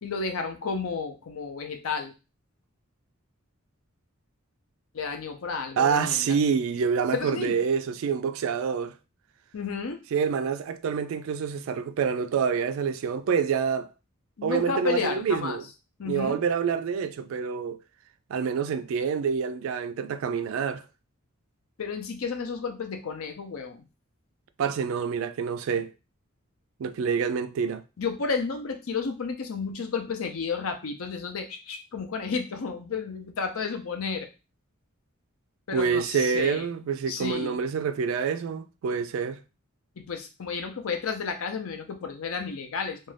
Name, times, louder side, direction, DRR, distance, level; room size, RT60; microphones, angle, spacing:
voice 1, 0.0-2.1 4.9-6.4 7.1-7.6 9.5-10.0 14.4-15.6 16.0-16.4 21.8-23.9 28.0-34.3 35.7-36.7 37.1-37.6 40.0-43.0, left 5 dB, 75° left, 0.6 m, -32 dB
voice 2, 5.8-8.9 10.1-13.9 14.4-15.6 16.0-17.8 18.3-20.8 24.6-25.9 26.8-27.8 35.7-39.4, right 6 dB, 70° right, 0.3 m, -27 dB
2.5 x 2.3 x 3.2 m
head